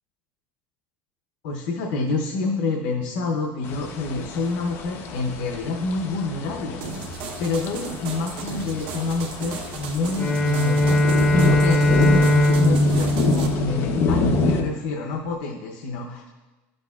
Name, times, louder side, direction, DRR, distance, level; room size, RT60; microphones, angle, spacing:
voice 1, 1.4-6.8 7.4-11.0 11.5-16.3, left 3 dB, 70° left, 1 dB, 0.8 m, -28 dB
sound 1, 3.6-14.6, left 3 dB, 45° left, 0.8 m, -27 dB
sound 2, 6.8-13.5, right 5 dB, 90° right, 1.0 m, -35 dB
Bowed string instrument, 10.1-14.5, left 1 dB, 15° left, 0.8 m, -20 dB
12.5 x 6.5 x 2.4 m, 1.2 s
cardioid pair, 150°, 6 cm